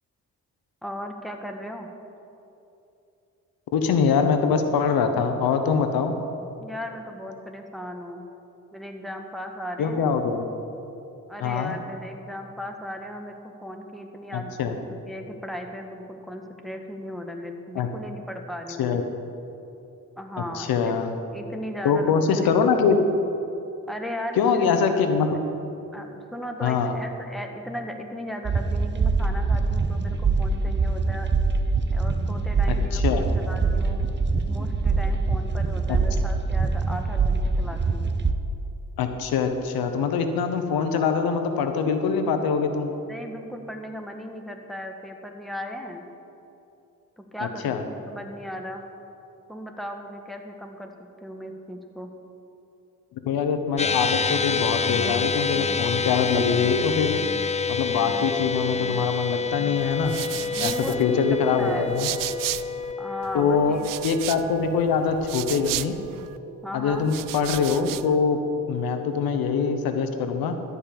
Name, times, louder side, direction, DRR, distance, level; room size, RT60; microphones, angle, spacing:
voice 1, 0.8-1.9 6.6-8.3 8.7-10.1 11.3-19.0 20.2-21.0 21.3-22.1 23.9-25.0 25.9-31.3 31.9-34.1 34.5-38.1 43.1-46.0 47.2-48.9 49.5-52.1 60.5-62.0 63.0-63.9 66.6-67.1, equal, ahead, 3 dB, 1.6 m, -37 dB
voice 2, 3.7-6.1 9.8-10.5 11.4-11.8 14.3-14.7 17.7-17.9 18.8-19.0 20.5-21.1 21.8-23.0 24.4-25.4 26.6-26.9 32.9-33.3 35.9-36.0 39.0-42.9 47.4-47.8 53.2-57.2 57.7-60.2 60.6-60.7 61.0-62.1 63.3-66.0 66.7-68.4 68.7-70.6, left 6 dB, 85° left, 7 dB, 1.0 m, -23 dB
sound 1, 28.5-38.3, right 4 dB, 30° right, 0.8 m, -24 dB
sound 2, 53.8-66.3, left 5 dB, 20° left, 0.4 m, -28 dB
sound 3, 59.8-62.9 63.2-66.4 66.9-68.2, right 14 dB, 70° right, 0.5 m, -34 dB
13.0 x 5.5 x 8.7 m, 2.8 s
supercardioid pair, 55°, 35 cm